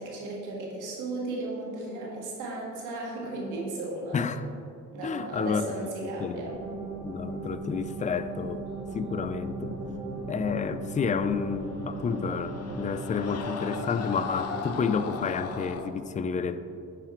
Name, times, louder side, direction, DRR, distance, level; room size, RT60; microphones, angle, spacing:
voice 1, 0.0-4.2 4.9-6.5, right 2 dB, 90° right, -3 dB, 1.6 m, -35 dB
voice 2, 4.1-4.5 5.0-5.6 6.0-6.5 7.0-8.6 8.9-9.7 10.3-16.6, left 6 dB, 25° left, 11 dB, 0.3 m, -30 dB
sound 1, 6.5-15.7, right 2 dB, 65° right, 1.5 m, -37 dB
Screaming, 11.4-15.9, left 6 dB, 55° left, 0.7 m, -39 dB
7.4 x 4.9 x 4.4 m, 2.5 s
cardioid pair, 90°, 30 cm